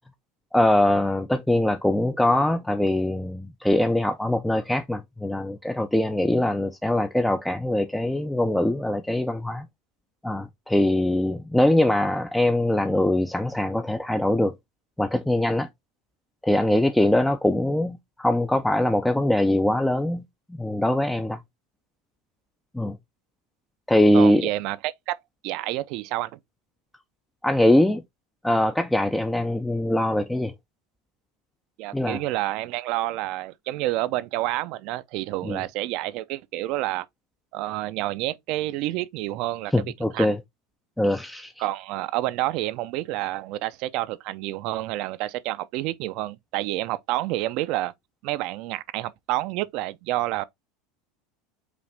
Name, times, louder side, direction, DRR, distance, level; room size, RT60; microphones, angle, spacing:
voice 1, 0.5-9.7 10.2-14.5 15.0-15.7 16.4-20.2 20.6-21.4 22.7-23.0 23.9-24.5 27.4-28.0 28.4-30.5 31.9-32.2 35.4-35.6 39.7-40.4 41.0-41.6, left 1 dB, 5° left, 0.4 m, -22 dB
voice 2, 24.1-25.2 25.4-26.4 31.8-37.1 37.5-39.7 40.1-40.4 41.6-47.9 48.2-50.4, right 16 dB, 60° right, 0.4 m, -29 dB
5.0 x 2.5 x 3.2 m
supercardioid pair, 120°, 0 cm